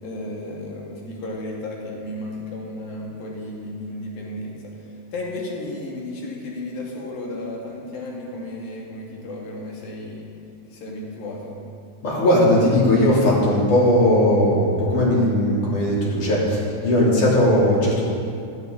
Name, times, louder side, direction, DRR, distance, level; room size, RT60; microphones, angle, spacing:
voice 1, 0.0-10.3 10.7-11.5, left 1 dB, 85° left, -3 dB, 4.1 m, -33 dB
voice 2, 12.0-18.0, left 1 dB, 60° left, -6 dB, 4.7 m, -18 dB
15.5 x 15.5 x 4.0 m, 2.4 s
omnidirectional pair, 4.0 m